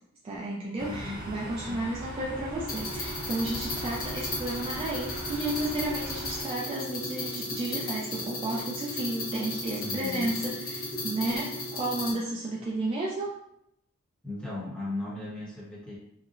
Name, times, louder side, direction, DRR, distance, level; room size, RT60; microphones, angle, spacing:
voice 1, 0.2-13.4, right 2 dB, 25° right, -4 dB, 0.3 m, -32 dB
voice 2, 0.8-1.9 9.7-10.3 14.2-16.0, left 2 dB, 5° left, -7 dB, 0.8 m, -37 dB
sound 1, 0.8-6.4, right 1 dB, 45° right, 0.8 m, -40 dB
sound 2, 2.7-12.1, left 2 dB, 45° left, 0.8 m, -35 dB
2.8 x 2.0 x 2.5 m, 0.76 s
head